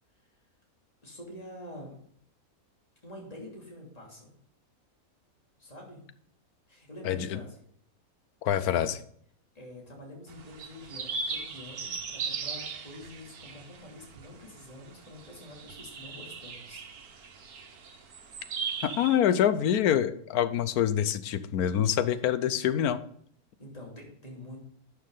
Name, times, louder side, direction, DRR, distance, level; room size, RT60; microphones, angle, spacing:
voice 1, 1.0-1.9 3.0-4.3 5.6-6.0 6.7-7.6 9.5-17.3 23.6-24.6, left 1 dB, 25° left, -2 dB, 2.8 m, -46 dB
voice 2, 7.0-7.4 8.4-9.0 18.8-23.0, left 10 dB, 80° left, 13 dB, 1.2 m, -26 dB
sound 1, 10.3-19.2, right 5 dB, 80° right, 1.5 m, -39 dB
11.5 x 6.3 x 3.9 m, 0.63 s
omnidirectional pair, 1.6 m